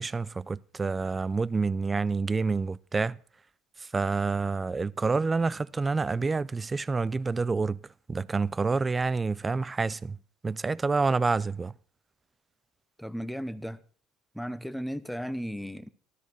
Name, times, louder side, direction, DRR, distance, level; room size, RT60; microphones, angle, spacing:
voice 1, 0.0-3.2 3.8-7.8 8.1-10.2 10.4-11.7, right 4 dB, 25° right, 0.5 m, -28 dB
voice 2, 13.0-13.8 14.3-15.9, equal, ahead, 1.0 m, -35 dB
13.5 x 13.0 x 4.6 m
supercardioid pair, 90°, 0 cm